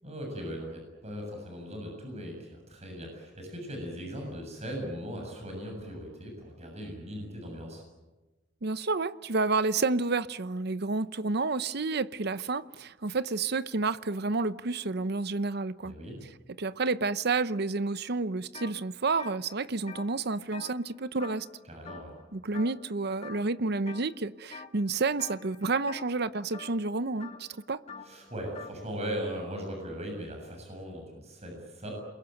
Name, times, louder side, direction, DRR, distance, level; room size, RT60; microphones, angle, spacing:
voice 1, 0.0-7.8 15.8-16.2 21.6-22.2 28.0-31.9, equal, 35° right, 7.3 m, -39 dB
voice 2, 8.6-15.9 16.6-21.5 22.3-27.8, right 3 dB, 60° right, 0.8 m, -30 dB
sound 1, 18.5-18.7 19.1-21.6 21.9-22.2 22.5-22.9 23.2-24.0 24.5-24.8 25.2-28.8, left 5 dB, 35° left, 2.7 m, -46 dB
28.5 x 22.0 x 9.2 m
head